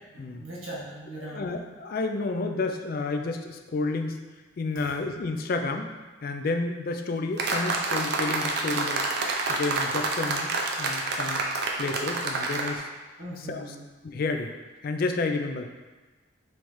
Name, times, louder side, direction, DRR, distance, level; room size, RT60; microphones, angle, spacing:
voice 1, 0.1-1.6 4.7-4.9 13.2-13.9, right 1 dB, 80° right, -6 dB, 1.5 m, -40 dB
voice 2, 1.2-4.2 4.6-5.9 6.2-9.0 9.5-11.4 11.8-12.9 13.5-13.7 14.0-14.5 14.8-15.7, left 3 dB, 45° left, 5 dB, 0.3 m, -30 dB
sound 1, 7.4-12.8, right 3 dB, 50° right, 0.5 m, -28 dB
5.5 x 3.2 x 3.1 m, 1.3 s
head